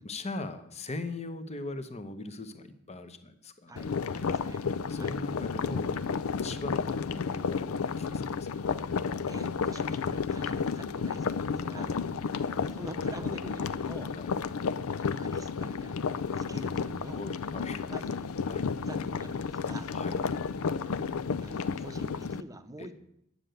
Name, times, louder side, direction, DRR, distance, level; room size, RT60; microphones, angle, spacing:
voice 1, 0.0-3.8 4.6-5.9 6.4-8.6 11.7-12.0 14.1-14.3 17.1-17.8 18.5-18.7 19.9-20.2 22.8-22.9, left 2 dB, 30° left, 9 dB, 1.0 m, -40 dB
voice 2, 3.7-4.6 5.0-5.2 6.4-6.6 9.3-12.0 12.7-14.1 15.0-17.3 17.9-18.4 18.8-19.9 21.4-23.0, right 1 dB, 15° right, 9 dB, 0.8 m, -46 dB
sound 1, 3.8-22.4, left 5 dB, 80° left, 0.5 m, -32 dB
9.8 x 6.7 x 9.1 m, 0.75 s
head